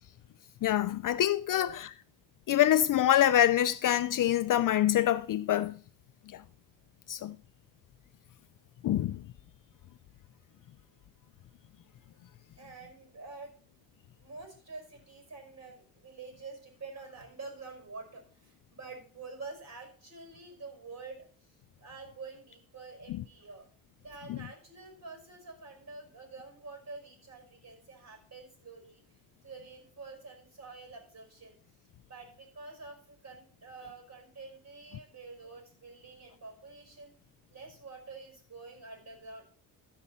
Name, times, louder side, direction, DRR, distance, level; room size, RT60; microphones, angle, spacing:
voice 1, 0.6-1.9 2.5-5.8 6.3-6.4 7.1-7.4 8.8-9.2 23.1-23.2 24.3-24.4, left 12 dB, 50° left, 0.5 m, -26 dB
voice 2, 1.5-1.8 12.6-13.5 14.2-21.5 21.8-23.7 24.0-29.0 29.4-31.5 32.1-37.1 37.5-39.4, right 3 dB, 35° right, 5.4 m, -47 dB
14.0 x 5.5 x 5.6 m
cardioid pair, 85°, 43 cm